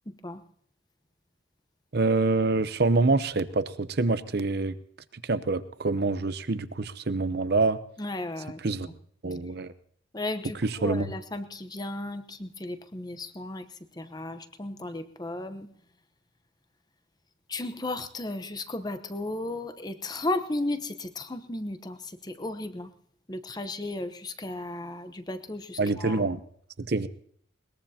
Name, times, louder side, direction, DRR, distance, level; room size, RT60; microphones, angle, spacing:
voice 1, 0.1-0.4 8.0-8.6 10.1-15.7 17.5-22.9 23.3-26.2, left 2 dB, 20° left, 10 dB, 0.9 m, -35 dB
voice 2, 1.9-4.8 5.2-7.8 8.6-8.9 9.2-9.7 10.6-11.1 25.8-26.4 26.8-27.1, right 3 dB, 50° right, 13 dB, 0.8 m, -26 dB
21.5 x 20.5 x 2.8 m, 0.62 s
head